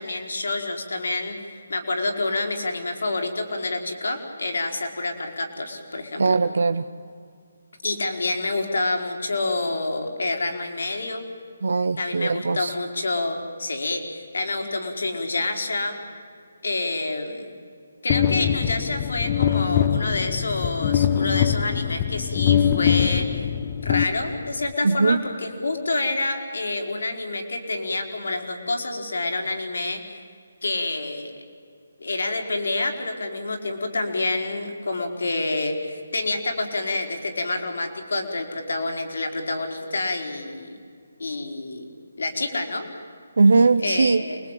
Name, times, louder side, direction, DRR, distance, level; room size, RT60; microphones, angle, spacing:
voice 1, 0.0-6.4 7.8-11.2 12.0-15.9 16.6-17.5 18.0-23.4 23.8-30.0 30.6-31.3 32.0-40.7 41.2-41.8 42.2-42.9 43.8-44.4, left 2 dB, 75° left, 3 dB, 4.7 m, -28 dB
voice 2, 6.2-6.9 11.6-12.7 24.8-25.2 43.4-44.2, right 3 dB, 75° right, 9 dB, 0.9 m, -20 dB
sound 1, 18.1-24.7, left 9 dB, 25° left, 0.7 m, -23 dB
28.5 x 21.0 x 9.2 m, 2.2 s
hypercardioid pair, 165°, 0 cm